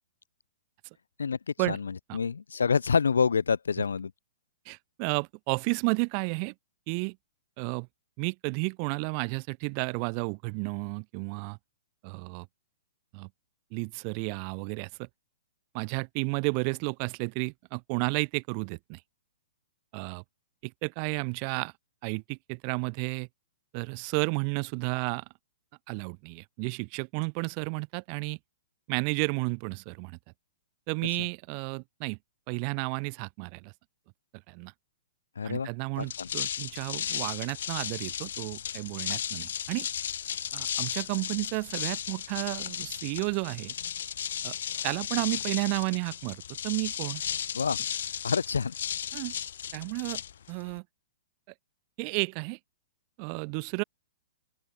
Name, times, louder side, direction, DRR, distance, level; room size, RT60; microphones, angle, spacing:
voice 1, 1.2-4.1 35.4-35.7 36.0-36.3 47.5-47.8 48.2-48.7, left 6 dB, 85° left, 0.9 m, -27 dB
voice 2, 4.7-6.5 6.9-7.2 7.6-7.9 8.2-11.6 12.0-12.5 13.1-13.3 13.7-15.1 15.7-19.0 19.9-20.2 20.6-21.7 22.0-23.3 23.7-25.2 25.9-28.4 28.9-30.2 30.9-32.2 32.5-33.7 34.5-34.7 35.4-39.9 40.5-43.7 44.4-44.5 44.8-47.2 49.1-49.3 49.7-50.2 50.5-50.8 52.0-52.6 53.2-53.8, right 40 dB or more, 40° right, 2.4 m, -32 dB
sound 1, 36.0-50.8, left 9 dB, 70° left, 1.8 m, -35 dB
open air
hypercardioid pair, 130°, 0 cm